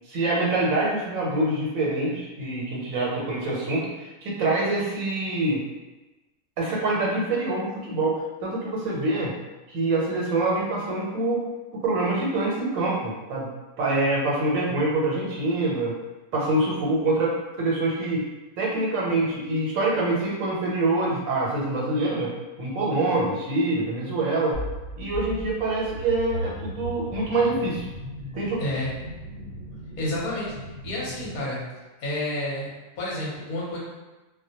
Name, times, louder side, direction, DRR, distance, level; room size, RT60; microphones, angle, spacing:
voice 1, 0.1-5.6 6.6-9.3 9.7-11.4 11.8-13.5 13.8-15.9 16.3-18.2 18.6-22.3 22.6-24.6 25.0-27.8 28.3-28.6, right 2 dB, 90° right, -4 dB, 1.0 m, -25 dB
sound 1, 24.5-31.4, right 1 dB, 55° right, 0.7 m, -37 dB
voice 2, 28.6-28.9 30.0-30.5 30.8-31.6 32.0-33.8, left 1 dB, 45° left, -6 dB, 0.7 m, -30 dB
2.2 x 2.1 x 2.7 m, 1.1 s
omnidirectional pair, 1.4 m